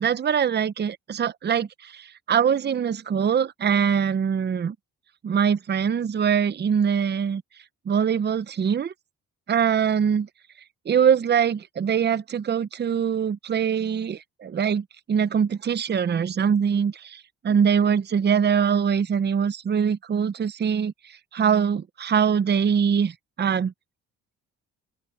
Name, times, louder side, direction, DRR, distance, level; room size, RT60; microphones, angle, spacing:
voice 1, 0.0-4.8 5.2-7.4 7.9-8.9 9.5-10.3 10.9-23.7, right 7 dB, 35° right, 0.7 m, -23 dB
open air
cardioid pair, 90°, 30 cm